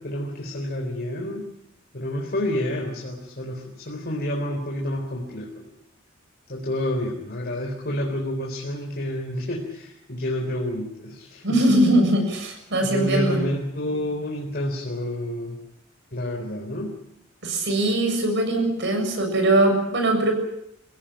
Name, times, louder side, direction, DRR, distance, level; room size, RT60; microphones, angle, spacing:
voice 1, 0.0-1.5 1.9-5.7 6.5-11.8 12.8-15.6 16.1-17.0, left 1 dB, 50° left, 0 dB, 4.0 m, -29 dB
voice 2, 11.4-13.4 17.4-20.3, right 1 dB, 60° right, 4 dB, 7.4 m, -21 dB
25.0 x 17.0 x 8.9 m, 0.79 s
head